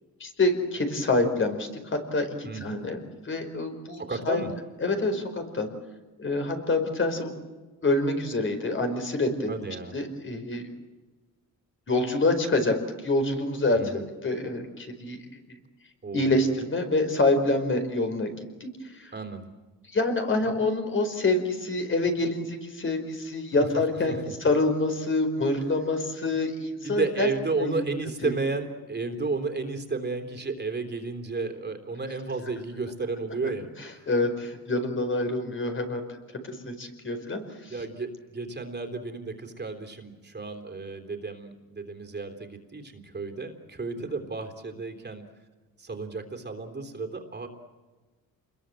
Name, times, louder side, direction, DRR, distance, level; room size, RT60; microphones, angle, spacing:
voice 1, 0.2-3.0 3.2-4.4 4.8-5.7 6.2-7.3 7.8-9.5 9.9-10.6 11.9-12.7 13.0-13.8 14.2-15.2 15.5-15.6 16.1-18.3 18.6-18.7 18.9-19.1 19.9-24.1 24.4-27.3 27.6-27.8 28.2-28.3 34.1-36.0 36.4-37.7, left 2 dB, 35° left, 6 dB, 4.7 m, -26 dB
voice 2, 2.5-2.8 4.0-4.5 9.5-9.9 13.7-14.0 16.0-16.5 19.1-19.5 23.6-23.7 24.1-24.3 26.8-34.1 37.7-45.2 45.8-47.5, right 3 dB, 30° right, 5 dB, 3.6 m, -33 dB
28.5 x 21.5 x 7.8 m, 1.2 s
cardioid pair, 120°, 35 cm